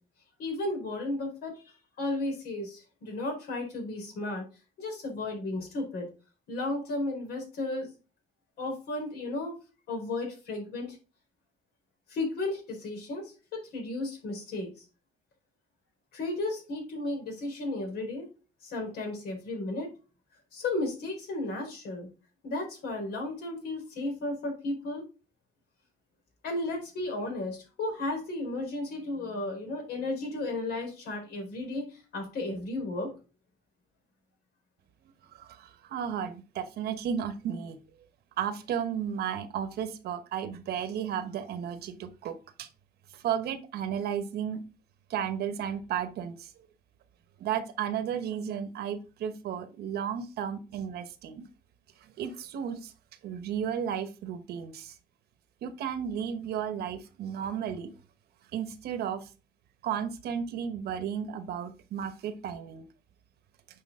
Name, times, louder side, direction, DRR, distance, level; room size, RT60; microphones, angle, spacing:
voice 1, 0.4-1.5 2.0-4.4 4.8-6.1 6.5-7.9 8.6-9.5 9.9-11.0 12.1-13.3 13.7-14.7 16.1-18.2 18.6-19.9 20.5-22.1 22.4-25.0 26.4-31.9 32.1-33.1, left 2 dB, 70° left, 4.4 m, -34 dB
voice 2, 35.3-37.8 38.4-42.7 43.1-44.6 45.1-46.7 47.4-51.4 52.0-52.9 53.2-54.9 55.6-57.9 58.5-59.3 59.8-62.9, right 8 dB, 70° right, 1.2 m, -34 dB
8.6 x 5.1 x 3.7 m
cardioid pair, 110°, 17 cm